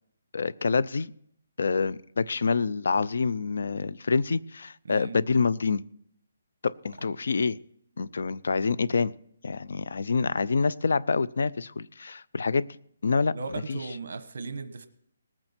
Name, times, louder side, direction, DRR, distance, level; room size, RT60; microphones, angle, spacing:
voice 1, 0.3-1.1 1.6-5.8 6.6-7.6 8.0-9.1 9.4-12.7 13.0-13.3 13.7-13.8, left 4 dB, 65° left, 18 dB, 0.5 m, -26 dB
voice 2, 13.3-14.9, right 4 dB, 60° right, 10 dB, 1.2 m, -37 dB
19.0 x 8.9 x 4.4 m, 0.70 s
hypercardioid pair, 175°, 0 cm